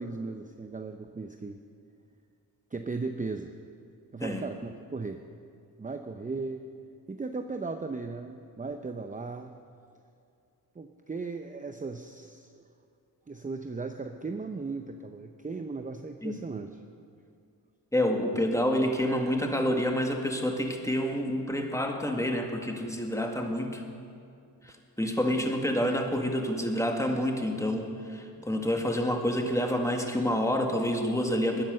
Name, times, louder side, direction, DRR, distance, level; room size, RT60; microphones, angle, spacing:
voice 1, 0.0-1.6 2.7-3.5 4.1-5.2 5.8-6.6 7.1-9.5 10.8-12.5 13.3-16.7, right 3 dB, 20° right, 6 dB, 0.7 m, -36 dB
voice 2, 17.9-23.8 24.6-31.6, equal, 10° left, 2 dB, 1.9 m, -28 dB
20.0 x 10.0 x 6.6 m, 2.4 s
wide cardioid pair, 100°, 38 cm